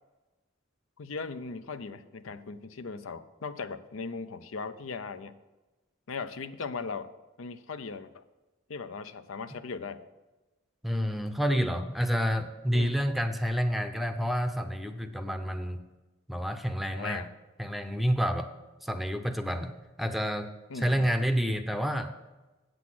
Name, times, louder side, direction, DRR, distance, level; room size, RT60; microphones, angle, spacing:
voice 1, 1.0-5.3 6.1-7.1 7.4-8.2 8.7-10.0 12.7-13.0 16.9-17.3 20.7-21.1, left 4 dB, 80° left, 11 dB, 0.6 m, -38 dB
voice 2, 10.8-15.8 16.3-17.2 17.6-18.5 18.8-20.5 20.8-22.1, equal, ahead, 7 dB, 0.6 m, -29 dB
8.3 x 7.9 x 6.1 m, 1.1 s
head